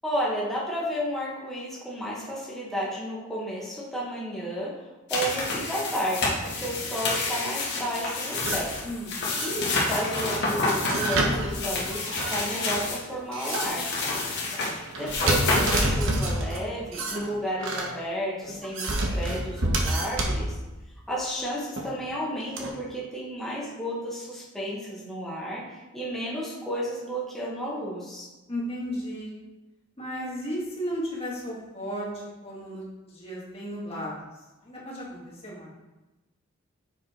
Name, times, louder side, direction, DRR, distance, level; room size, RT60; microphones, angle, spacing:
voice 1, 0.0-4.8 5.1-8.7 9.3-14.2 15.0-20.5 21.1-28.3, equal, ahead, -6 dB, 1.4 m, -32 dB
sound 1, 5.1-13.0 13.4-15.9, left 3 dB, 55° left, 1.7 m, -29 dB
sound 2, 8.3-8.8 9.3-9.9 10.8-12.8 13.3-13.9 14.9-16.6 16.9-17.9 18.5-20.5 21.8-21.9 22.6-22.7, right 1 dB, 65° right, 1.1 m, -28 dB
voice 2, 8.8-9.2 14.5-14.8 28.5-29.4 30.0-34.1 34.6-35.7, equal, 30° left, -6 dB, 2.2 m, -34 dB
7.0 x 4.9 x 4.5 m, 1.1 s
head